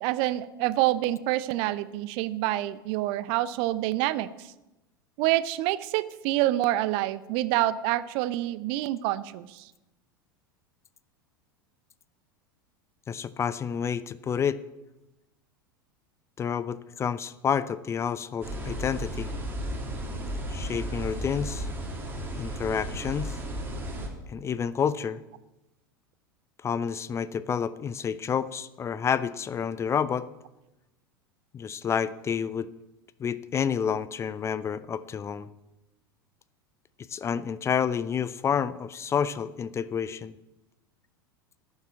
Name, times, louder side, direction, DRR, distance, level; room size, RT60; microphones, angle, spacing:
voice 1, 0.0-4.3 5.2-9.6, right 15 dB, 45° right, 16 dB, 0.7 m, -27 dB
voice 2, 13.1-14.6 16.4-19.3 20.5-21.7 22.4-23.4 24.3-25.2 26.6-30.3 31.5-32.7 33.2-35.5 37.1-40.3, left 7 dB, 25° left, 16 dB, 0.5 m, -29 dB
sound 1, 18.4-24.1, right 1 dB, 15° right, 3.1 m, -34 dB
12.0 x 7.3 x 9.7 m, 0.97 s
figure-of-eight pair, 80°, 12 cm